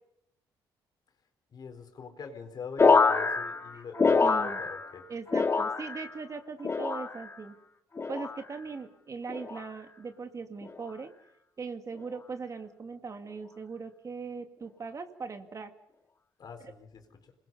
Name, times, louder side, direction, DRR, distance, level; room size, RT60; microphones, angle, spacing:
voice 1, 1.5-5.1 16.4-17.3, left 5 dB, 50° left, 6 dB, 4.2 m, -44 dB
sound 1, 2.8-5.0 5.3-6.1 6.6-7.3 8.0-8.4 9.3-9.7 10.6-10.9, left 4 dB, 30° left, 1.7 m, -26 dB
voice 2, 4.2-4.6 5.1-7.6 8.1-11.1 11.6-15.7, right 4 dB, 40° right, 7 dB, 2.1 m, -40 dB
27.5 x 21.0 x 5.5 m, 0.81 s
cardioid pair, 85°, 9 cm